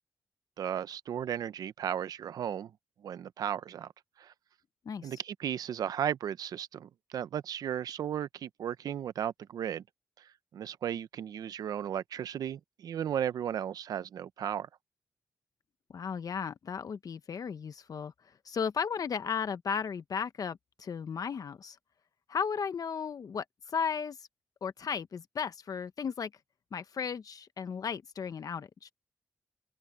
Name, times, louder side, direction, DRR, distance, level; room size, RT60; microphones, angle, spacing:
voice 1, 0.6-2.7 3.0-3.9 4.2-4.3 5.0-9.8 10.5-14.7, right 9 dB, 90° right, 0.7 m, -35 dB
voice 2, 4.9-5.2 15.9-18.1 18.4-21.8 22.3-24.3 24.6-26.3 26.7-28.9, left 6 dB, 70° left, 0.8 m, -35 dB
open air
cardioid pair, 45°, 6 cm